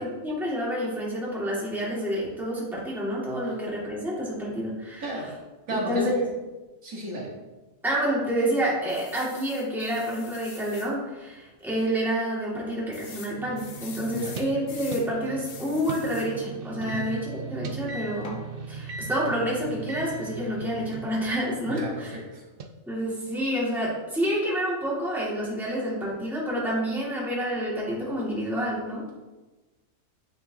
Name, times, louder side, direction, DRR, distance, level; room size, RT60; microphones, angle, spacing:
voice 1, 0.0-5.2 5.7-6.2 7.8-18.4 18.7-22.2 22.9-29.0, equal, ahead, -7 dB, 1.7 m, -28 dB
voice 2, 5.7-6.2 6.8-7.3 14.1-14.4 16.8-17.1 21.6-22.4, right 1 dB, 65° right, -3 dB, 1.5 m, -32 dB
sound 1, 8.9-10.9 11.4-11.6 11.8-11.9 12.9-15.1 15.4-16.3 18.2-18.5, left 5 dB, 55° left, 0.8 m, -44 dB
sound 2, 13.4-21.5 22.6-22.7, right 5 dB, 90° right, 0.5 m, -38 dB
9.6 x 3.7 x 2.7 m, 1.2 s
omnidirectional pair, 1.6 m